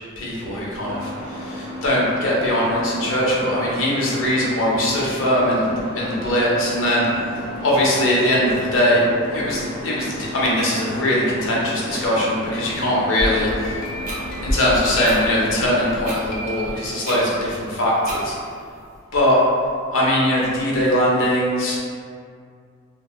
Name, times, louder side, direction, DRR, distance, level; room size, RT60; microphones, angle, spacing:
voice 1, 0.2-7.2 7.6-9.0 9.3-13.8 14.4-18.3 19.1-19.4 19.9-21.8, left 1 dB, 90° left, -5 dB, 0.6 m, -21 dB
sound 1, 0.8-15.9, left 1 dB, 20° left, 0.8 m, -34 dB
sound 2, 13.2-16.0 16.3-17.6, equal, 45° left, 0.3 m, -37 dB
sound 3, 14.0-14.2 15.0-15.2 16.0-16.2 17.0-17.2 18.0-18.2, right 2 dB, 40° right, 0.5 m, -31 dB
2.2 x 2.1 x 2.9 m, 2.2 s
head